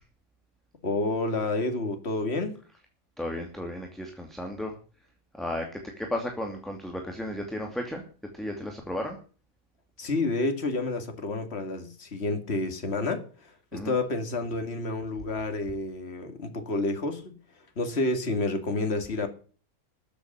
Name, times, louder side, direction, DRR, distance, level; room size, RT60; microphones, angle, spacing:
voice 1, 0.8-2.6 10.0-17.3 17.8-19.3, left 2 dB, 45° left, 2.5 m, -29 dB
voice 2, 3.2-4.7 5.4-8.0 8.3-9.2 13.7-14.0, left 1 dB, ahead, 2.4 m, -34 dB
13.5 x 8.3 x 8.9 m
omnidirectional pair, 1.5 m